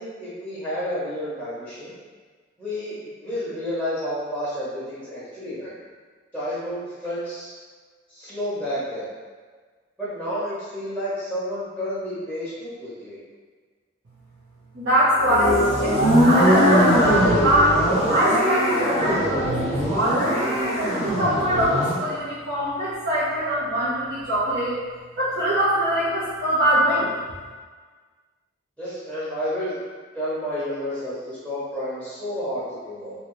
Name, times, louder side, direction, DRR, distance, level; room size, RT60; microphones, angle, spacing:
voice 1, 0.0-1.9 2.6-3.0 3.2-5.7 6.3-7.6 8.1-9.1 10.0-13.2 28.8-29.8 30.1-33.1, equal, 5° right, -12 dB, 0.8 m, -30 dB
voice 2, 14.7-17.8 18.1-20.5 21.0-24.8 25.2-27.1, equal, 80° right, -12 dB, 0.8 m, -23 dB
sound 1, 15.2-22.0, equal, 35° right, 0.9 m, -21 dB
2.8 x 2.8 x 3.1 m, 1.5 s
head